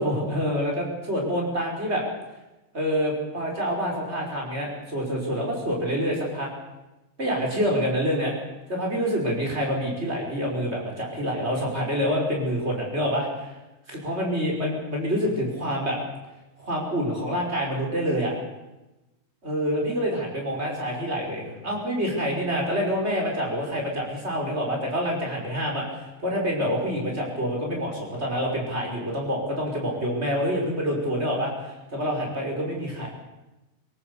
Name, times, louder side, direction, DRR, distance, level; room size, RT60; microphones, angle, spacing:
voice 1, 0.0-2.0 2.7-6.5 7.2-8.3 8.7-13.5 13.9-16.0 16.6-18.3 19.4-33.1, equal, 15° right, 0 dB, 5.2 m, -27 dB
24.0 x 18.0 x 7.0 m, 1.0 s
omnidirectional pair, 5.4 m